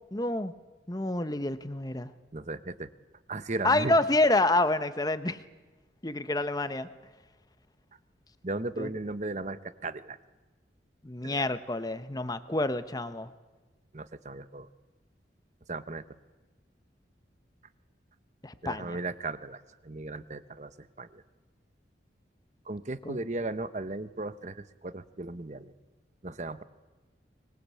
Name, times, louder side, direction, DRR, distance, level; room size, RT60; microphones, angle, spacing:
voice 1, 0.1-0.5 0.9-2.1 3.6-5.4 6.0-6.9 8.8-8.9 11.0-13.3 18.4-19.0 23.0-23.2, left 2 dB, 20° left, 11 dB, 1.0 m, -28 dB
voice 2, 2.3-2.9 3.3-4.0 8.4-10.2 11.2-11.5 13.9-14.7 15.7-16.0 18.6-20.7 21.0-21.2 22.7-25.7 26.2-26.6, right 2 dB, 40° right, 13 dB, 0.9 m, -36 dB
24.5 x 20.5 x 8.5 m, 1.2 s
head